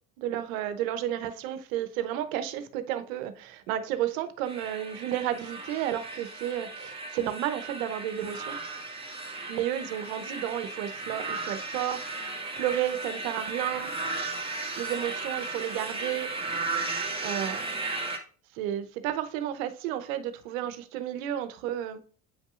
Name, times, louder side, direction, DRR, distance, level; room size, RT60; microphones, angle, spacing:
voice 1, 0.2-8.6 9.5-12.0 12.6-13.9 14.8-16.3 17.2-17.7 18.5-22.0, right 11 dB, 75° right, 1.0 m, -32 dB
sound 1, 4.4-18.2, right 3 dB, 15° right, 1.9 m, -35 dB
8.8 x 5.4 x 2.5 m
hypercardioid pair, 80°, 40 cm